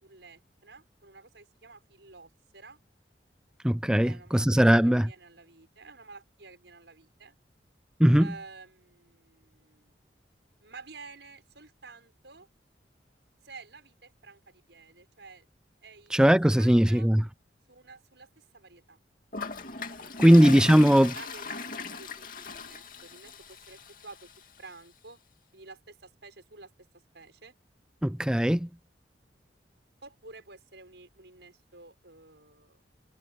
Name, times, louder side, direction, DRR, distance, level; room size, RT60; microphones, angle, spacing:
voice 1, 0.0-2.8 4.0-7.3 8.2-9.9 10.6-12.5 13.4-15.5 15.8-17.1 17.7-19.0 20.0-24.3 24.6-25.2 25.5-26.7 27.1-27.5 30.0-32.8, right 3 dB, 80° right, 6.0 m, -51 dB
voice 2, 3.6-5.1 8.0-8.3 16.1-17.2 20.2-21.1 28.0-28.7, equal, 5° right, 0.5 m, -19 dB
Toilet flush, 19.3-24.4, left 3 dB, 50° left, 2.5 m, -38 dB
head